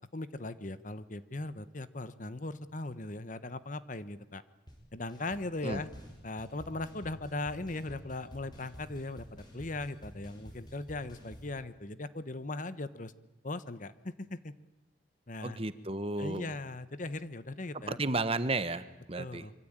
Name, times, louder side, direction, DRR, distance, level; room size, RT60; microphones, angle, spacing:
voice 1, 0.1-4.4 4.9-5.9 6.2-13.1 13.4-14.5 15.3-15.6 16.2-18.0 19.1-19.5, left 2 dB, 45° left, 13 dB, 1.2 m, -39 dB
sound 1, 4.7-4.8 5.1-5.4 5.7-11.5, equal, 25° left, 6.4 m, -50 dB
voice 2, 15.4-16.6 17.7-19.4, right 2 dB, 30° right, 12 dB, 1.3 m, -33 dB
26.0 x 24.5 x 9.0 m, 0.97 s
head